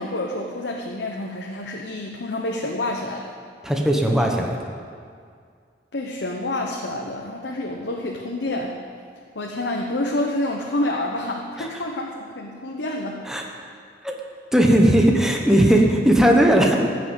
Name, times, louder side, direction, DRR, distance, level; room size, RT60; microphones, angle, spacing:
voice 1, 0.0-3.3 5.9-8.8 9.3-13.5, left 1 dB, 70° left, 0 dB, 1.0 m, -28 dB
voice 2, 3.6-4.6 11.6-11.7 13.3-13.4 14.0-14.1 14.5-16.7, right 1 dB, 5° right, 0 dB, 1.1 m, -17 dB
14.5 x 6.3 x 8.1 m, 2.1 s
head